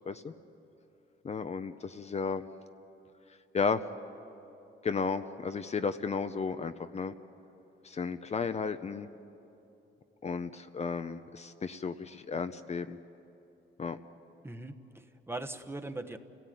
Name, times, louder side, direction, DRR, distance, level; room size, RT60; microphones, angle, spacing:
voice 1, 1.2-2.5 3.5-3.8 4.8-7.1 7.8-9.1 10.2-13.0 13.8-14.0, left 5 dB, 35° left, 9 dB, 0.8 m, -33 dB
voice 2, 14.4-16.2, right 2 dB, 10° right, 7 dB, 1.2 m, -40 dB
29.5 x 17.5 x 9.3 m, 2.9 s
cardioid pair, 90°, 20 cm